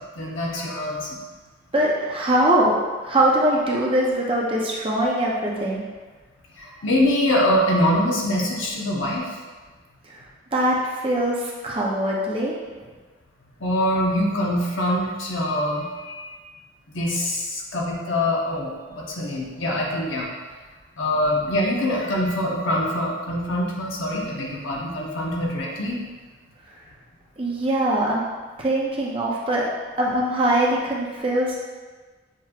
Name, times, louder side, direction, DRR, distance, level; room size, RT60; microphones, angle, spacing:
voice 1, 0.2-1.2 6.6-9.3 13.6-16.4 16.9-20.3 21.0-26.0, left 1 dB, 80° left, -2 dB, 0.9 m, -24 dB
voice 2, 1.7-5.8 10.0-10.2 10.5-12.5 27.4-28.2 28.6-29.7 30.0-31.6, right 1 dB, 25° right, -3 dB, 0.7 m, -22 dB
7.3 x 3.0 x 2.4 m, 1.4 s
head